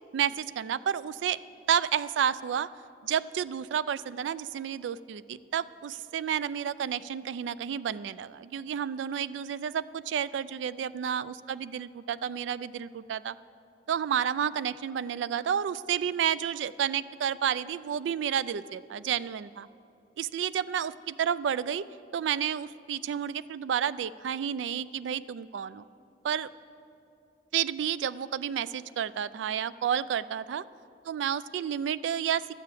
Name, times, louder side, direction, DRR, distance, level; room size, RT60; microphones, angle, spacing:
voice 1, 0.1-1.4 1.7-2.7 3.0-13.4 13.9-19.7 20.2-21.9 22.1-25.8 26.2-26.5 27.5-30.6 31.1-32.5, right 8 dB, 90° right, 17 dB, 0.3 m, -30 dB
12.0 x 6.8 x 8.2 m, 2.6 s
head